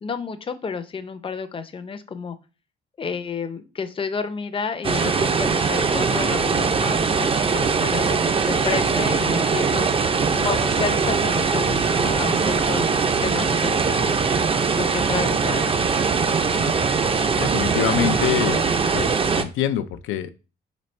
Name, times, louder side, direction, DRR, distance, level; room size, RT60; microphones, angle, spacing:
voice 1, 0.0-2.4 3.0-14.1 14.8-15.8, left 5 dB, 25° left, 9 dB, 0.5 m, -31 dB
sound 1, 4.8-19.4, right 5 dB, 30° right, 0.5 m, -21 dB
voice 2, 17.3-20.3, left 10 dB, 85° left, 11 dB, 0.4 m, -25 dB
4.1 x 4.1 x 3.2 m, 0.33 s
cardioid pair, 90°, 20 cm